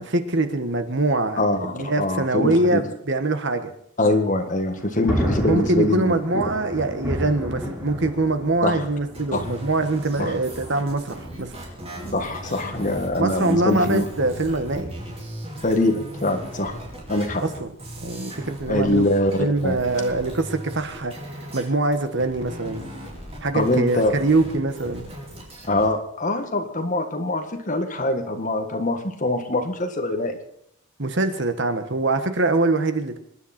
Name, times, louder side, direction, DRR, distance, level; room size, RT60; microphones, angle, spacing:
voice 1, 0.0-3.7 5.4-11.5 13.2-14.9 17.4-17.7 18.0-19.1 19.4-21.2 21.5-22.8 23.4-25.1 31.0-33.2, right 2 dB, 55° right, 9 dB, 1.4 m, -23 dB
voice 2, 1.4-2.8 4.0-6.4 8.6-8.8 9.3-9.4 10.2-10.3 12.1-14.0 15.6-16.7 17.1-17.4 18.7-19.8 23.5-24.2 25.7-30.4, left 2 dB, 35° left, 5 dB, 1.8 m, -23 dB
Thunder, 4.5-15.2, equal, 10° right, 4.5 m, -33 dB
sound 1, 9.1-21.7 21.9-25.9, right 1 dB, 25° right, 4.6 m, -38 dB
26.0 x 10.5 x 4.4 m, 0.71 s
head